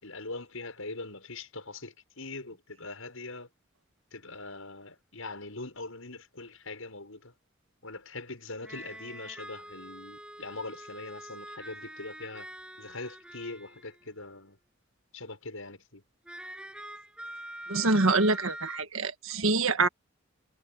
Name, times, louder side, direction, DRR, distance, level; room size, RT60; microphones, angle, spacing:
voice 1, 0.0-3.5 4.1-7.4 7.8-12.5 12.8-14.6 15.1-16.0, left 3 dB, 85° left, 7.1 m, -42 dB
sound 1, 6.5-6.6 8.6-14.1 16.3-18.8, right 1 dB, 5° right, 7.3 m, -44 dB
voice 2, 17.7-19.9, right 3 dB, 80° right, 1.6 m, -25 dB
head